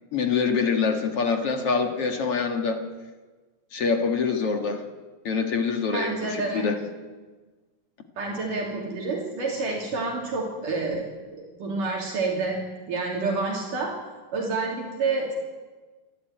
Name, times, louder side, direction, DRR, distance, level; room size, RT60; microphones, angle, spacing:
voice 1, 0.1-2.8 3.7-4.8 5.2-6.8, left 5 dB, 50° left, 4 dB, 2.1 m, -25 dB
voice 2, 5.9-6.7 8.2-11.0 11.3-12.6 12.9-13.9 14.3-15.4, right 3 dB, 60° right, -1 dB, 4.5 m, -28 dB
28.0 x 13.0 x 9.2 m, 1.3 s
omnidirectional pair, 4.3 m